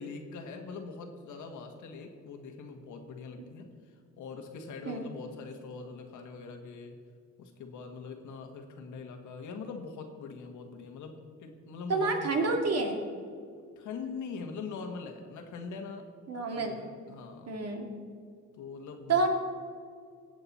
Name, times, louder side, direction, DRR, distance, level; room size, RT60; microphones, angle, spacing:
voice 1, 0.0-7.0 7.4-12.7 13.8-16.1 16.4-17.5 18.6-19.3, left 4 dB, 75° left, 4 dB, 1.6 m, -43 dB
voice 2, 11.9-13.0 16.3-16.8 17.5-17.9 19.1-19.3, right 3 dB, 55° right, 2 dB, 2.2 m, -28 dB
18.5 x 7.9 x 4.3 m, 2.2 s
cardioid pair, 90°, 30 cm